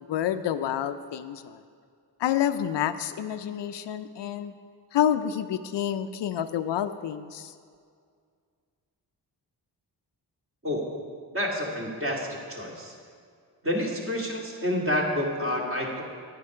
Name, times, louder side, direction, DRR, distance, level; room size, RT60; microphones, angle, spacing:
voice 1, 0.1-1.6 2.2-4.5 4.9-7.5, left 10 dB, 75° left, 11 dB, 0.5 m, -28 dB
voice 2, 11.3-12.9 13.6-16.0, left 1 dB, 30° right, -2 dB, 2.3 m, -29 dB
9.7 x 9.4 x 4.9 m, 2.2 s
cardioid pair, 65°, 44 cm